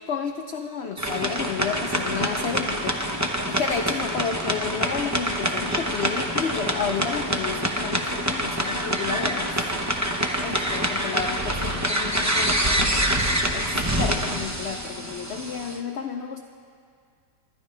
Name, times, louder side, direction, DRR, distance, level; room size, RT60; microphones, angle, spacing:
voice 1, 0.1-9.5 9.9-10.0 10.4-13.2 13.5-16.4, left 6 dB, 80° left, 5 dB, 0.6 m, -31 dB
sound 1, 1.0-15.8, equal, 25° right, 0.3 m, -26 dB
24.5 x 11.5 x 3.3 m, 2.3 s
omnidirectional pair, 1.8 m